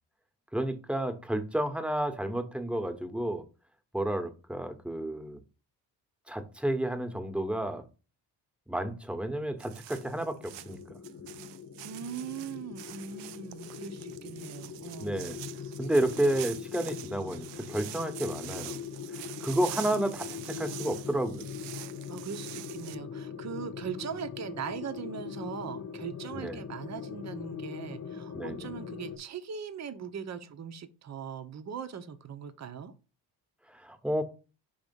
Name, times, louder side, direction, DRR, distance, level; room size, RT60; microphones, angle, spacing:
voice 1, 0.5-3.4 3.9-5.4 6.3-7.8 8.7-10.8 15.0-15.4 15.8-18.8 19.4-21.5 26.3-26.6 28.3-28.7 33.7-34.2, right 1 dB, ahead, 1.2 m, -31 dB
sound 1, 9.6-23.0, right 14 dB, 70° right, 0.6 m, -45 dB
sound 2, 9.9-29.2, left 7 dB, 35° left, 1.0 m, -42 dB
voice 2, 11.8-15.3 19.7-19.9 21.8-32.9, right 7 dB, 40° right, 0.8 m, -40 dB
5.1 x 3.5 x 5.3 m
supercardioid pair, 65°, 44 cm